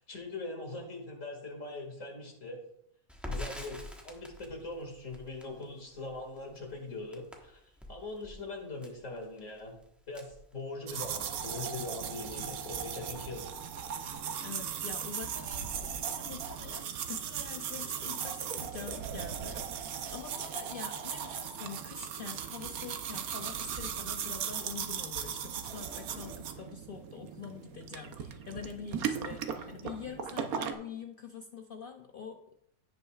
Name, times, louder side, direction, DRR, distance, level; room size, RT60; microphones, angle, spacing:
voice 1, 0.0-2.6 3.2-7.6 7.9-9.8 10.1-13.4, left 2 dB, 55° left, 1 dB, 2.4 m, -41 dB
Crackle, 3.1-11.2 11.5-11.6 11.9-12.7, left 1 dB, ahead, 1.0 m, -46 dB
sound 1, 10.9-30.7, right 8 dB, 70° right, 1.2 m, -38 dB
voice 2, 14.4-32.5, left 6 dB, 80° left, 5 dB, 0.4 m, -45 dB
16.0 x 5.5 x 2.4 m, 0.75 s
omnidirectional pair, 1.6 m